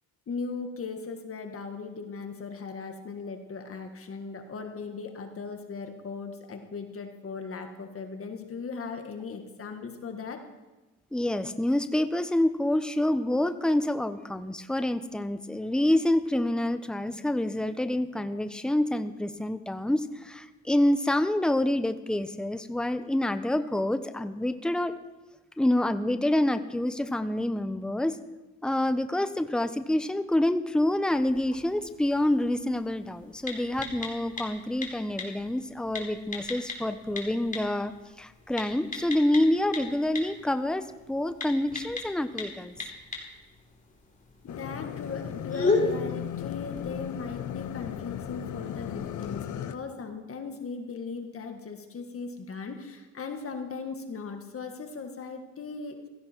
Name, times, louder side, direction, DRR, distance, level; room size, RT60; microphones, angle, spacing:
voice 1, 0.3-10.4 44.4-56.0, left 4 dB, 45° left, 5 dB, 1.8 m, -38 dB
voice 2, 11.1-25.0 25.6-28.2 28.6-37.9 38.2-42.7, left 1 dB, 5° left, 10 dB, 0.8 m, -27 dB
sound 1, 31.1-49.4, left 3 dB, 25° left, 4.1 m, -37 dB
sound 2, 44.5-49.7, left 10 dB, 75° left, 1.0 m, -36 dB
16.5 x 15.0 x 4.5 m, 1.1 s
cardioid pair, 90°, 30 cm